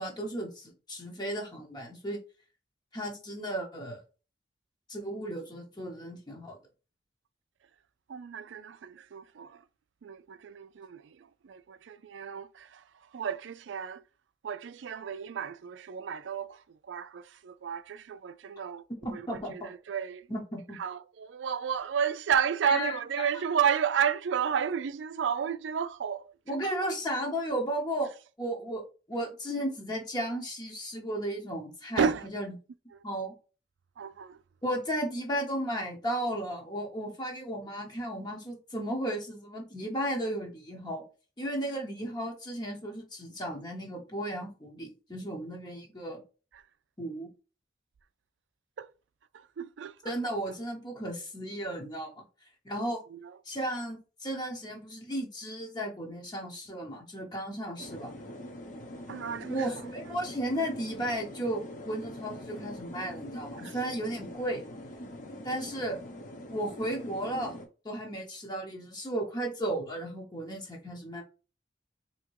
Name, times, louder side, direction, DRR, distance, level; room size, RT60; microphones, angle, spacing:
voice 1, 0.0-2.2 2.9-4.0 4.9-6.6 19.0-19.7 20.3-20.8 22.7-23.3 26.5-28.1 28.4-28.8 29.1-32.5 33.0-33.3 34.6-41.0 41.4-46.2 47.0-47.3 50.0-52.2 52.6-53.0 53.4-58.1 59.5-64.6 65.4-66.0 66.5-67.5 67.8-71.2, right 1 dB, 25° left, 0.9 m, -34 dB
voice 2, 8.1-9.6 10.0-12.8 13.1-14.0 14.4-16.6 16.9-18.8 19.1-20.3 20.8-26.6 32.0-32.3 32.9-33.0 34.0-34.4 48.8-48.9 49.3-50.1 53.1-53.3 59.1-59.7 63.6-63.8, right 7 dB, 85° right, 0.4 m, -32 dB
sound 1, 57.8-67.7, left 1 dB, 45° left, 0.9 m, -43 dB
3.6 x 2.9 x 4.6 m
head